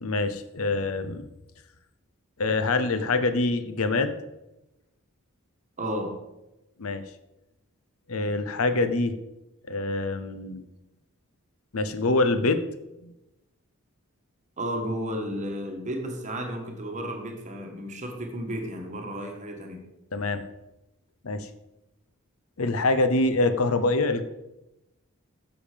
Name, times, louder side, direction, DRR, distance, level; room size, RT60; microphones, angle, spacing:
voice 1, 0.0-1.3 2.4-4.2 6.8-7.0 8.1-9.2 9.7-10.6 11.7-12.6 13.0-13.1 20.1-20.4 21.2-21.5 22.6-24.2, left 2 dB, 70° left, 11 dB, 0.8 m, -25 dB
voice 2, 5.8-6.1 14.6-19.8, equal, 35° right, 3 dB, 1.5 m, -33 dB
10.0 x 7.1 x 5.1 m, 0.95 s
head